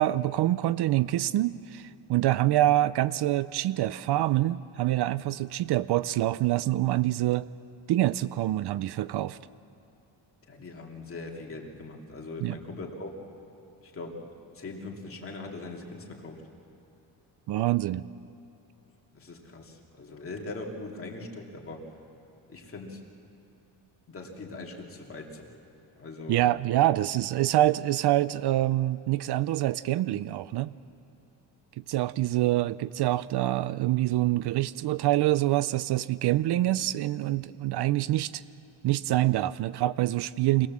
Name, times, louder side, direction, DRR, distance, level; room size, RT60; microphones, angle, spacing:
voice 1, 0.0-7.5 7.9-9.4 12.4-12.6 17.5-18.0 26.3-30.7 31.9-38.4 38.8-40.7, right 15 dB, 65° right, 17 dB, 0.5 m, -26 dB
voice 2, 10.5-13.2 13.8-16.4 19.1-21.8 22.5-23.0 24.1-25.5 26.0-26.4, left 2 dB, 30° left, 0 dB, 2.6 m, -41 dB
25.5 x 19.5 x 7.4 m, 2.9 s
cardioid pair, 155°, 43 cm